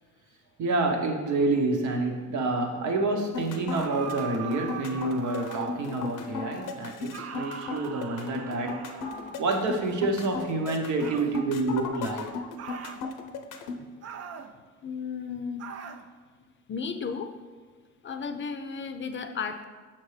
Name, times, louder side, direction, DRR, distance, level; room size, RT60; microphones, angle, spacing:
voice 1, 0.6-8.8 9.4-12.3, right 2 dB, 75° right, 3 dB, 0.9 m, -28 dB
sound 1, 3.2-13.8, left 4 dB, 85° left, 0.6 m, -36 dB
sound 2, 3.7-6.0 7.1-9.4 11.0-11.4 12.6-13.0 14.0-14.5 15.6-16.1, right 7 dB, 55° right, 0.5 m, -40 dB
voice 2, 14.8-15.7 16.7-17.4 18.0-19.7, left 5 dB, 40° left, 8 dB, 0.5 m, -34 dB
5.9 x 5.9 x 3.3 m, 1.5 s
cardioid pair, 90°, 30 cm